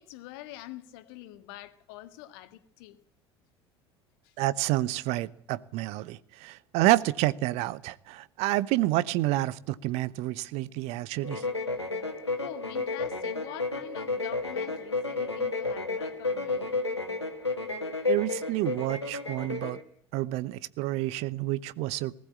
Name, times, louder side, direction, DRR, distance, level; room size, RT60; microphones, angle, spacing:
voice 1, 0.0-3.0 4.2-4.3 12.4-16.8, left 14 dB, 60° left, 1.7 m, -45 dB
voice 2, 4.4-11.4 18.1-19.8 20.1-22.2, right 16 dB, 50° right, 0.9 m, -29 dB
sound 1, 11.2-19.8, left 3 dB, 85° left, 1.8 m, -32 dB
19.5 x 16.5 x 8.6 m
figure-of-eight pair, 65°, 14 cm